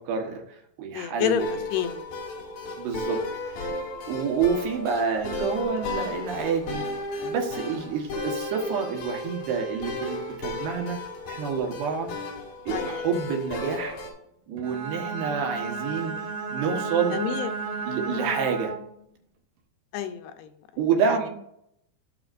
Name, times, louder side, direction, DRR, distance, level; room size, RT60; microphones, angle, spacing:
voice 1, 0.0-1.6 2.8-3.7 4.1-6.9 7.2-11.0 11.3-12.1 12.7-14.0 14.5-16.1 16.5-17.2 17.9-18.7 20.8-21.3, right 6 dB, 80° right, 2 dB, 3.5 m, -28 dB
voice 2, 0.9-2.0 12.7-12.9 17.1-17.5 18.1-18.4 19.9-20.5, left 9 dB, 80° left, 7 dB, 2.8 m, -29 dB
sound 1, 1.4-14.1, left 2 dB, 60° left, 3.1 m, -34 dB
Bowed string instrument, 14.6-19.0, right 5 dB, 65° right, 1.9 m, -33 dB
15.5 x 5.8 x 2.6 m, 0.75 s
omnidirectional pair, 4.6 m